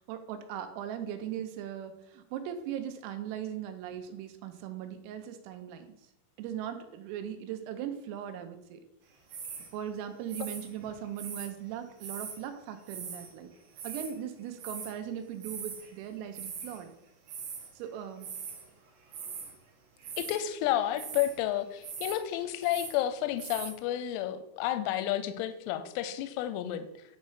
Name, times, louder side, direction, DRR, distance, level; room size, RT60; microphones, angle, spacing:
voice 1, 0.1-6.0 6.4-8.8 9.7-13.5 13.8-16.9 17.7-18.3, right 9 dB, 80° right, 8 dB, 3.4 m, -39 dB
sound 1, 9.3-9.7 10.3-11.5 12.0-12.4 12.8-13.3 13.6-14.1 14.6-14.9 15.4-15.9 16.2-16.8 17.3-17.7 18.2-18.7 19.1-19.6 20.0-20.5 21.0-21.4 21.8-22.2 22.5-23.0 23.4-23.7, right 6 dB, 65° right, 3.1 m, -41 dB
voice 2, 20.2-27.0, left 12 dB, 90° left, 10 dB, 3.3 m, -31 dB
10.5 x 4.1 x 4.9 m, 0.80 s
omnidirectional pair, 6.0 m